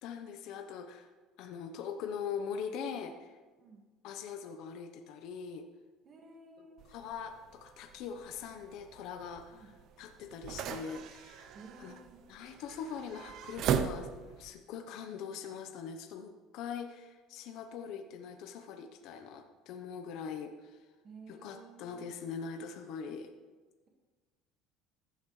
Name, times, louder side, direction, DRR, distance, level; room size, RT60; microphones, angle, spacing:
voice 1, 0.0-1.1 1.4-3.4 4.0-5.7 6.8-12.0 12.3-20.8 21.3-23.3, left 6 dB, 65° left, 6 dB, 0.9 m, -42 dB
voice 2, 6.1-6.8 9.5-9.7 11.5-12.2 21.0-22.1, right 3 dB, 35° right, 0 dB, 1.9 m, -54 dB
sound 1, 6.8-14.5, right 8 dB, 55° right, 0.8 m, -39 dB
15.0 x 11.0 x 3.3 m, 1.3 s
cardioid pair, 135°, 0 cm